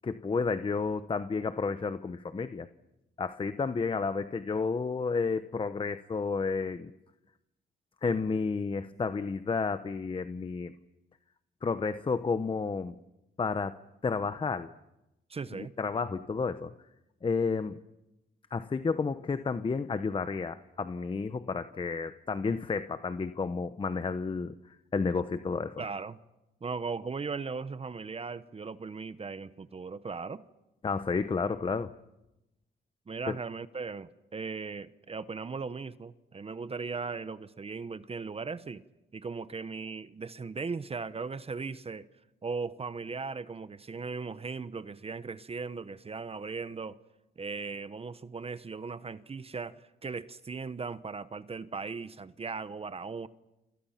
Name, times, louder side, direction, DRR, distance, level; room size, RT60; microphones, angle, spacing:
voice 1, 0.0-2.7 3.2-6.9 8.0-10.7 11.6-13.0 13.4-14.7 15.5-16.7 17.2-17.8 18.5-24.6 24.9-25.8 30.8-31.9 33.3-33.4, left 4 dB, 25° left, 1.0 m, -31 dB
voice 2, 15.3-15.7 25.8-26.2 26.6-30.4 33.1-38.8 39.1-42.1 42.4-47.0 47.4-53.3, right 4 dB, 30° right, 1.0 m, -38 dB
29.0 x 27.0 x 5.9 m
cardioid pair, 90°, 20 cm